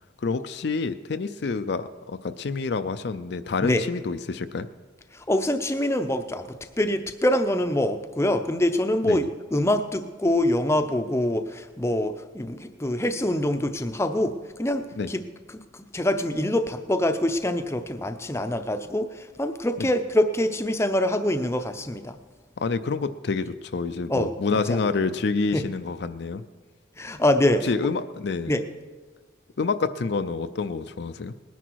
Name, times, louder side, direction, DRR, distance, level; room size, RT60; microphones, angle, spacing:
voice 1, 0.2-4.7 9.0-9.2 15.0-15.1 19.8-19.9 22.6-26.4 27.6-28.5 29.6-31.3, left 4 dB, 60° left, 10 dB, 0.5 m, -28 dB
voice 2, 5.1-6.5 6.8-15.2 15.5-22.2 24.1-24.8 25.5-25.7 27.0-27.7 28.5-28.6, left 1 dB, 15° left, 8 dB, 0.6 m, -25 dB
19.5 x 10.0 x 4.6 m, 1.4 s
head